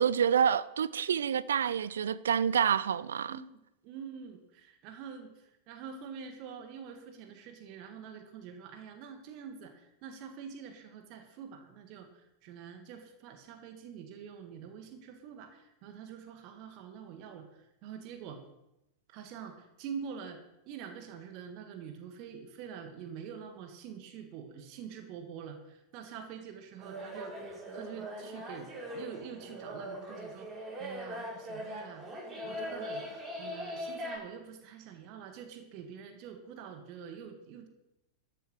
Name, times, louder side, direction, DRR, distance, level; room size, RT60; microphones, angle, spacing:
voice 1, 0.0-3.4, right 8 dB, 65° right, 0.5 m, -28 dB
voice 2, 3.8-18.4 19.1-20.4 20.7-32.0 32.4-33.0 33.4-37.7, right 7 dB, 45° right, 1.7 m, -46 dB
sound 1, 26.8-34.2, equal, 15° right, 5.9 m, -41 dB
13.5 x 7.7 x 6.5 m
figure-of-eight pair, 90°, 0 cm